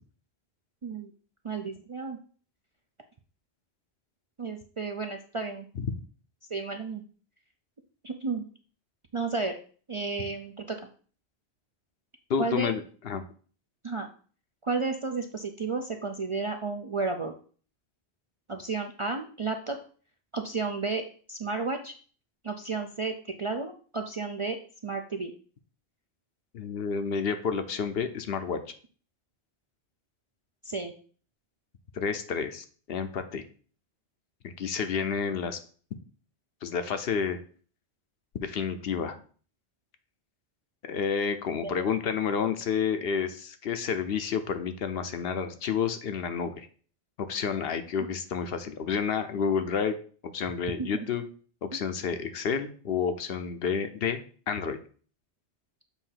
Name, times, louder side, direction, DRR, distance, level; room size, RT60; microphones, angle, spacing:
voice 1, 1.4-2.2 4.4-5.7 6.5-7.0 8.0-8.5 9.1-9.6 9.9-10.8 12.4-12.7 13.8-14.1 14.6-17.3 18.5-19.8 20.3-21.0 21.3-21.9 22.4-24.6 24.8-25.3 30.6-30.9 41.6-41.9 50.8-51.0 51.7-51.8, right 4 dB, 45° right, 4 dB, 0.4 m, -32 dB
voice 2, 12.3-13.2 26.5-28.6 31.9-33.4 34.4-35.6 36.6-37.4 38.4-39.2 40.9-46.7 47.2-50.0 50.2-51.2 51.6-54.2 54.5-54.8, left 6 dB, 65° left, 9 dB, 0.8 m, -30 dB
7.2 x 2.7 x 5.7 m, 0.42 s
omnidirectional pair, 1.1 m